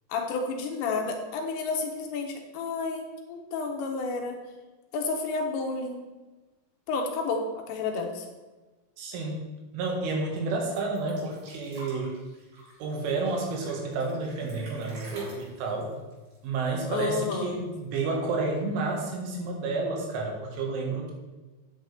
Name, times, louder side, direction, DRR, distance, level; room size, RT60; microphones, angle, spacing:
voice 1, 0.1-4.4 4.9-6.0 6.9-8.3 16.9-17.6, left 4 dB, 75° left, 3 dB, 3.0 m, -31 dB
voice 2, 9.0-9.5 9.7-12.1 12.8-15.9 16.4-21.1, right 3 dB, 85° right, 0 dB, 4.0 m, -30 dB
sound 1, 10.7-17.2 17.4-17.5 17.8-18.6 19.4-19.5, right 1 dB, 60° right, 4.6 m, -49 dB
9.1 x 8.5 x 3.4 m, 1.2 s
omnidirectional pair, 5.5 m